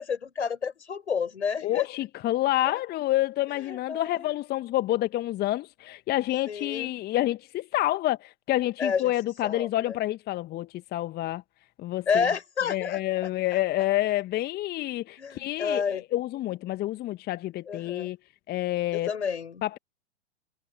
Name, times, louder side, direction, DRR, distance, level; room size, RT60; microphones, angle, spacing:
voice 1, 0.0-1.9 3.7-4.3 6.5-7.0 8.8-9.1 9.4-10.0 12.1-13.0 15.2-16.0 17.7-18.1 18.9-19.6, left 6 dB, 70° left, 7.7 m, -30 dB
voice 2, 1.6-11.4 11.8-12.2 12.6-18.2 18.5-19.2 19.6-19.8, left 15 dB, 25° left, 1.7 m, -28 dB
figure-of-eight pair, 100°, 35 cm